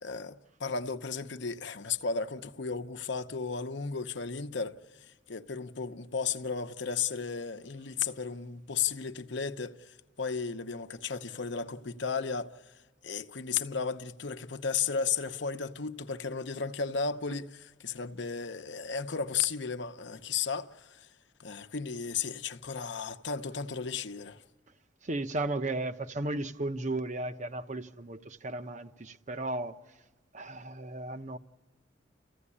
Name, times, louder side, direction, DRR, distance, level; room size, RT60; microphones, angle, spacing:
voice 1, 0.0-12.5 13.0-21.1 21.4-24.4, left 5 dB, 65° left, 0.9 m, -34 dB
voice 2, 25.0-29.8 30.3-31.4, right 2 dB, 40° right, 0.8 m, -35 dB
29.5 x 15.5 x 9.8 m
head